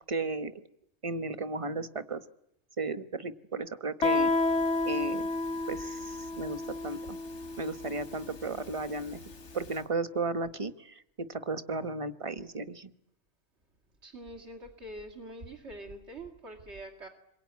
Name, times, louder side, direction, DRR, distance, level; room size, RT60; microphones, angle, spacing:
voice 1, 0.1-0.6 1.0-2.2 2.8-4.3 4.9-5.3 5.7-7.2 7.6-9.2 9.5-12.9, right 3 dB, 30° right, 12 dB, 1.1 m, -34 dB
Guitar, 4.0-9.5, left 2 dB, 85° left, 2.1 m, -31 dB
voice 2, 14.0-17.1, right 1 dB, 75° right, 2 dB, 2.8 m, -44 dB
27.0 x 23.0 x 9.6 m, 0.80 s
omnidirectional pair, 1.2 m